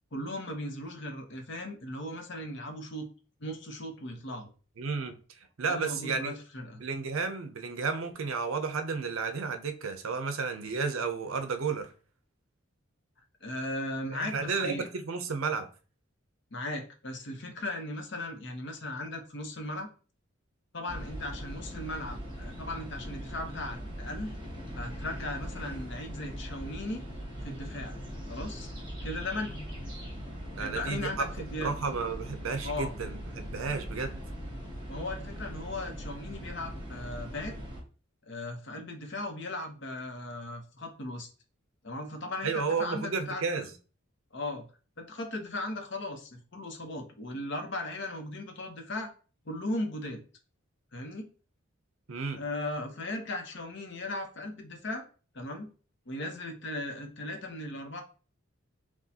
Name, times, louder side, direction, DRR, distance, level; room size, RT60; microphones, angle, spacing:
voice 1, 0.1-3.1 3.4-4.5 5.7-6.8 13.4-14.9 16.5-19.9 20.7-24.3 24.7-27.0 27.4-28.0 28.3-28.7 29.0-29.7 30.6-31.7 32.6-32.9 34.9-37.6 38.2-41.3 41.8-43.4 44.3-44.7 45.0-49.1 49.4-50.2 50.9-51.3 52.3-55.0 55.3-55.7 56.1-58.0, left 1 dB, 60° left, 0.9 m, -37 dB
voice 2, 4.8-5.2 5.6-6.3 6.8-11.9 14.1-15.7 30.6-31.3 31.6-34.2 42.4-43.7 52.1-52.4, right 5 dB, 85° right, 0.6 m, -32 dB
sound 1, 20.9-37.8, equal, 20° right, 1.2 m, -40 dB
6.1 x 2.3 x 2.8 m
head